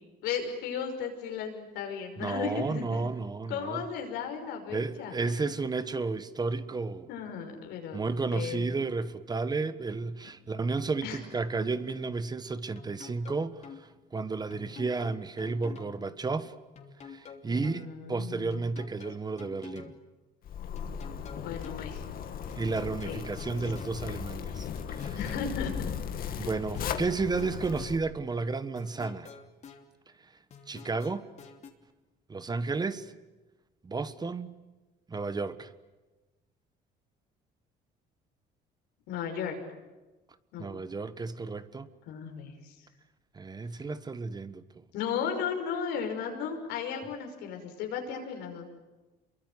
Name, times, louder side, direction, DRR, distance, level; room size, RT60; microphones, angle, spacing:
voice 1, 0.2-3.0 3.5-5.3 7.1-8.7 11.0-11.2 17.5-18.6 21.4-22.0 23.0-23.2 25.1-26.5 39.1-39.6 40.5-40.7 42.1-42.7 44.9-48.7, left 7 dB, 90° left, 5.8 m, -35 dB
voice 2, 2.2-3.8 4.7-7.1 7.9-16.5 17.0-19.9 22.5-24.7 24.9-25.2 26.4-29.3 30.7-31.3 32.3-33.1 33.8-34.6 35.1-35.7 40.6-41.9 43.3-44.6, right 4 dB, 25° right, 1.3 m, -32 dB
sound 1, 12.8-13.8 14.5-16.0 16.8-17.8 18.5-20.0 20.8-21.8 22.5-24.0 24.8-25.8 26.5-28.0 28.8-29.8 30.5-31.7, left 6 dB, 40° left, 3.0 m, -48 dB
Zipper (clothing), 20.4-28.0, left 8 dB, 60° left, 2.3 m, -37 dB
27.5 x 23.0 x 9.4 m
cardioid pair, 110°, 17 cm